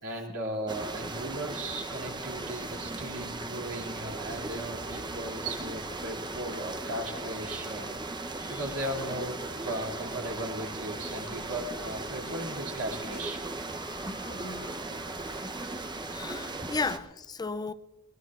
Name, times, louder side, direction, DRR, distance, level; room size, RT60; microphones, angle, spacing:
voice 1, 0.0-7.9 8.5-13.4 16.7-17.0, right 1 dB, 75° right, 2.8 m, -37 dB
sound 1, 0.7-17.0, right 2 dB, 20° right, 0.8 m, -37 dB
sound 2, 8.2-16.3, left 1 dB, 45° left, 5.2 m, -52 dB
sound 3, 10.9-16.0, left 6 dB, 70° left, 2.6 m, -56 dB
voice 2, 16.1-17.7, left 4 dB, 20° left, 0.4 m, -34 dB
22.0 x 19.5 x 2.5 m
head